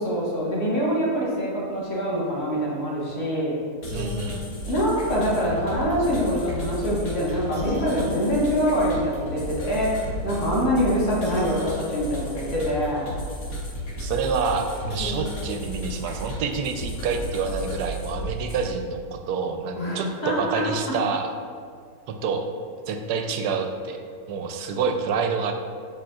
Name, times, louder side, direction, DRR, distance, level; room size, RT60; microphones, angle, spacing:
voice 1, 0.0-3.6 4.7-13.1 19.8-21.0, equal, 70° left, -6 dB, 2.0 m, -25 dB
sound 1, 3.8-18.6, equal, 50° left, 1.6 m, -33 dB
voice 2, 3.9-4.4 14.0-21.3 22.1-22.5 22.9-24.0 24.3-25.5, right 5 dB, 85° right, 5 dB, 1.1 m, -27 dB
7.6 x 5.2 x 2.4 m, 2.1 s
omnidirectional pair, 1.7 m